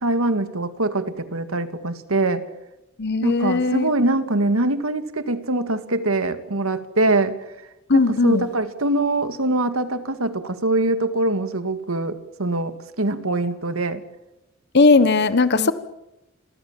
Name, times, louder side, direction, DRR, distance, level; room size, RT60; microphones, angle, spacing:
voice 1, 0.0-2.4 3.2-7.4 7.9-14.0 15.5-15.7, right 2 dB, 90° right, 10 dB, 2.1 m, -23 dB
voice 2, 3.0-3.9 7.9-8.5 14.7-15.7, left 3 dB, 55° left, 13 dB, 1.1 m, -18 dB
28.5 x 23.0 x 7.4 m, 0.94 s
head